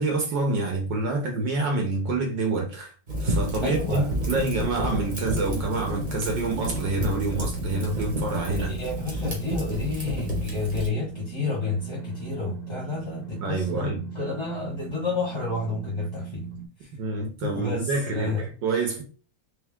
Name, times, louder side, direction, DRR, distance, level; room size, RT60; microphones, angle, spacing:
voice 1, 0.0-2.9 3.2-8.8 13.4-14.0 17.0-19.0, right 3 dB, 65° right, 1.6 m, -27 dB
Fire, 3.1-10.9, equal, 25° right, 1.3 m, -31 dB
voice 2, 3.6-4.1 8.5-16.4 16.8-16.9 17.4-18.4, left 3 dB, 15° left, 1.2 m, -30 dB
sound 1, 6.9-16.7, right 6 dB, 70° left, 0.5 m, -38 dB
3.5 x 3.5 x 3.6 m
omnidirectional pair, 2.2 m